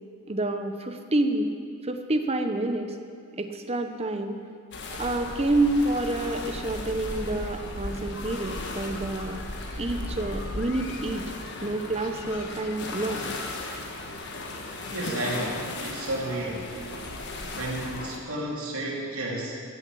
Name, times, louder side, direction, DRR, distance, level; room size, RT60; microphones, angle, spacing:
voice 1, 0.3-1.5 1.8-3.0 3.4-4.4 5.0-9.4 9.8-11.3 11.6-13.2, right 2 dB, 25° right, 7 dB, 0.7 m, -28 dB
sound 1, 4.7-18.2, left 2 dB, 50° left, 1.4 m, -36 dB
voice 2, 14.8-16.7 17.5-19.6, right 1 dB, 70° right, -4 dB, 2.7 m, -32 dB
14.5 x 7.0 x 7.6 m, 2.3 s
head